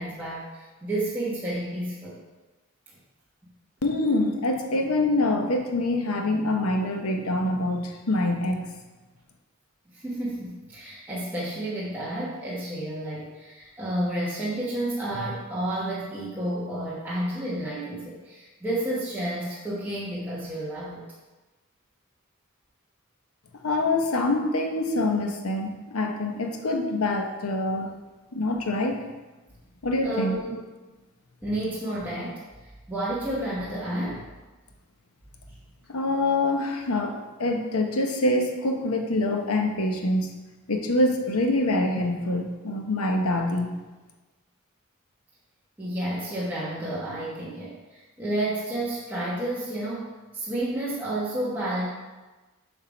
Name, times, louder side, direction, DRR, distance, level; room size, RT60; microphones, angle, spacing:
voice 1, 0.0-2.2 9.9-21.0 30.0-30.5 31.4-32.4 32.9-34.2 45.8-51.9, right 1 dB, 10° right, -8 dB, 1.1 m, -31 dB
voice 2, 3.8-8.7 23.6-27.9 28.3-29.1 29.8-30.4 35.9-40.3 40.7-43.7, left 2 dB, 90° left, 3 dB, 0.9 m, -25 dB
7.2 x 3.6 x 5.0 m, 1.2 s
head